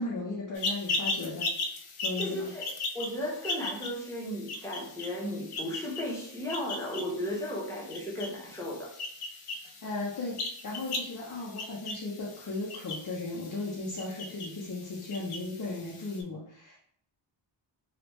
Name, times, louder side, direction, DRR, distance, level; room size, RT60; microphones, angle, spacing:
voice 1, 0.0-1.5 2.0-2.5 9.8-16.8, left 2 dB, 45° left, -5 dB, 0.7 m, -36 dB
sound 1, 0.6-16.2, left 3 dB, 85° left, 0.6 m, -38 dB
voice 2, 2.2-2.7 2.9-8.9, left 1 dB, 5° left, -5 dB, 0.8 m, -35 dB
3.3 x 2.4 x 3.0 m, 0.65 s
wide cardioid pair, 150°, 49 cm